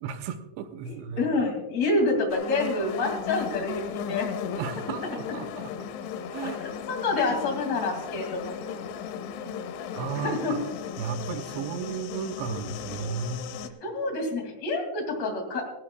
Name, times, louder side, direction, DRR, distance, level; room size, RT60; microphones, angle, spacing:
voice 1, 0.0-1.3 4.6-5.9 6.3-6.6 9.9-10.6 11.0-13.5, right 6 dB, 80° right, 8 dB, 2.9 m, -34 dB
voice 2, 0.9-4.3 6.4-8.5 9.4-9.5 10.2-10.5 13.8-15.7, left 2 dB, 40° left, 3 dB, 3.2 m, -28 dB
sound 1, 2.3-13.7, left 8 dB, 90° left, 3.3 m, -36 dB
18.5 x 17.0 x 2.3 m, 1.0 s
omnidirectional pair, 5.2 m